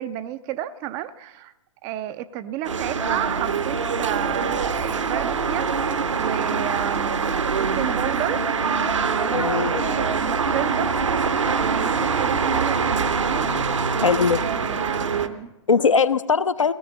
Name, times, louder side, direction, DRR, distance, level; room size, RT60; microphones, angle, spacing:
voice 1, 0.0-1.5 1.8-5.7 6.2-8.5 9.0-10.9 11.6-13.5 14.4-15.5, right 13 dB, 20° right, 14 dB, 0.4 m, -31 dB
sound 1, 2.6-15.3, right 5 dB, 70° right, 0.9 m, -24 dB
voice 2, 9.3-9.9 14.0-14.4 15.7-16.7, left 5 dB, 75° left, 12 dB, 0.6 m, -20 dB
17.5 x 14.0 x 3.9 m, 0.99 s
figure-of-eight pair, 115°, 16 cm